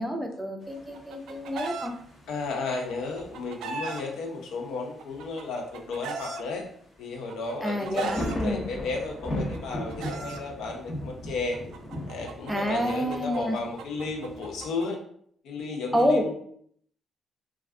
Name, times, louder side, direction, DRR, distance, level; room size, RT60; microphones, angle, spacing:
voice 1, 0.0-1.9 7.6-8.7 12.5-13.6 15.9-16.3, equal, 10° right, 3 dB, 0.5 m, -28 dB
sound 1, 0.6-14.7, left 1 dB, 35° left, 0.9 m, -39 dB
Chicken rooster, 0.8-1.9 3.0-4.0 5.0-6.4 7.3-8.4 9.4-10.4 11.5-14.9, right 4 dB, 80° right, 0.3 m, -37 dB
voice 2, 2.3-6.6 7.0-11.6 12.1-15.0 15.4-16.4, left 3 dB, 80° left, 2 dB, 0.5 m, -33 dB
2.3 x 2.3 x 3.4 m, 0.63 s
cardioid pair, 90°, 0 cm